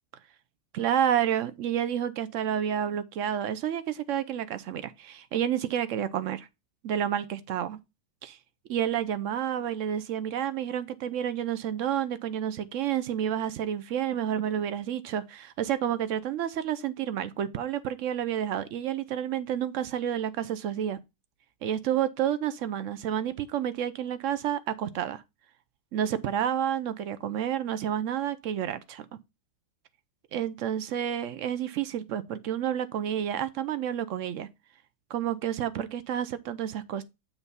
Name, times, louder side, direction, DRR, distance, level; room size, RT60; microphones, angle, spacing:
voice 1, 0.7-6.5 6.8-7.8 8.2-8.4 8.7-21.0 21.6-25.2 25.9-29.1 30.3-34.5 35.1-37.0, right 10 dB, 70° right, 0.7 m, -30 dB
7.3 x 3.3 x 5.4 m
omnidirectional pair, 1.9 m